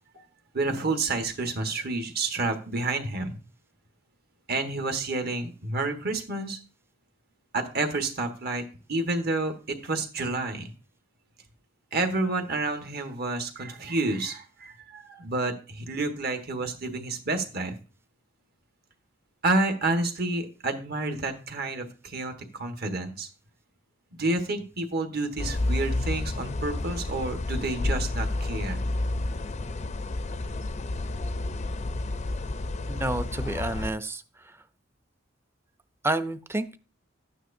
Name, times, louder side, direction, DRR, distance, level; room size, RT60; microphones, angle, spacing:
voice 1, 0.5-3.4 4.5-6.6 7.5-8.6 8.9-10.7 11.9-17.8 19.4-23.3 24.1-28.8, right 2 dB, 55° right, 5 dB, 1.4 m, -29 dB
sound 1, 25.4-33.9, left 2 dB, 35° left, 0.5 m, -30 dB
voice 2, 32.9-34.2 36.0-36.8, right 2 dB, 15° right, 11 dB, 0.5 m, -29 dB
12.5 x 9.2 x 2.7 m, 0.35 s
head